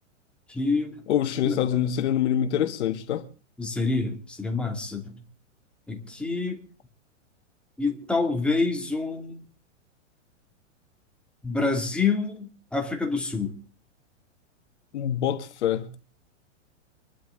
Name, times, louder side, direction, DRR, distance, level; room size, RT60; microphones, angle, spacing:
voice 1, 0.5-1.0 1.4-1.6 3.6-5.1 5.9-6.6 7.8-9.4 11.4-13.6, left 4 dB, 5° left, 2.6 m, -27 dB
voice 2, 1.1-3.3 14.9-15.9, left 10 dB, 60° left, 1.6 m, -25 dB
24.5 x 12.5 x 3.9 m
hypercardioid pair, 140°, 38 cm